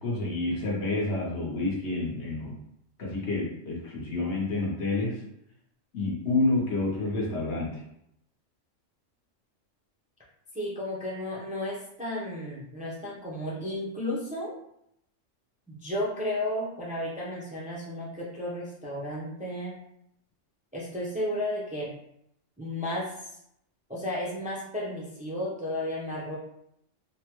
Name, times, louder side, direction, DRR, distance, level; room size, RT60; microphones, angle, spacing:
voice 1, 0.0-2.5 3.0-5.2 5.9-7.8, left 2 dB, 60° left, -3 dB, 1.1 m, -29 dB
voice 2, 10.5-14.5 15.7-19.8 20.7-21.9 22.6-23.4 23.9-26.4, left 1 dB, 10° right, -6 dB, 0.6 m, -33 dB
3.5 x 2.1 x 2.9 m, 0.75 s
omnidirectional pair, 1.3 m